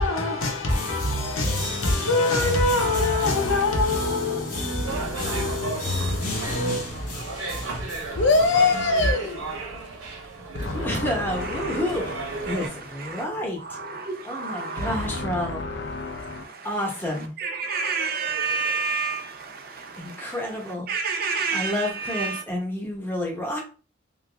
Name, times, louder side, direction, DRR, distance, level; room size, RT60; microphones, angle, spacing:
voice 1, 0.0-8.2, left 3 dB, 85° left, 0.9 m, -27 dB
sound 1, 0.7-9.1, left 1 dB, 40° left, 0.9 m, -29 dB
sound 2, 4.8-12.7, right 3 dB, 85° right, 1.0 m, -34 dB
voice 2, 8.2-9.5 10.5-12.6 14.8-16.5, left 3 dB, 60° left, 0.6 m, -26 dB
voice 3, 10.6-13.8 14.2-15.6 16.6-17.3 20.0-20.9 21.5-23.6, left 1 dB, 10° left, 0.9 m, -30 dB
voice 4, 11.3-13.2 13.6-15.2 15.9-22.4, right 4 dB, 45° right, 0.6 m, -31 dB
2.8 x 2.6 x 3.3 m
head